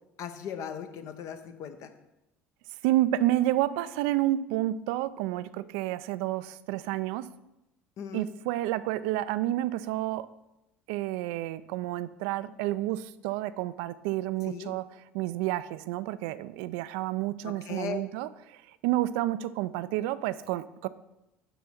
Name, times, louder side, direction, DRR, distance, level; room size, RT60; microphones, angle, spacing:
voice 1, 0.2-1.9 8.0-8.3 14.4-14.7 17.4-18.0, left 8 dB, 50° left, 8 dB, 0.9 m, -38 dB
voice 2, 2.8-7.3 8.1-10.3 10.9-14.9 15.1-20.9, right 15 dB, 65° right, 15 dB, 0.4 m, -30 dB
6.9 x 5.2 x 6.0 m, 0.91 s
figure-of-eight pair, 65°, 7 cm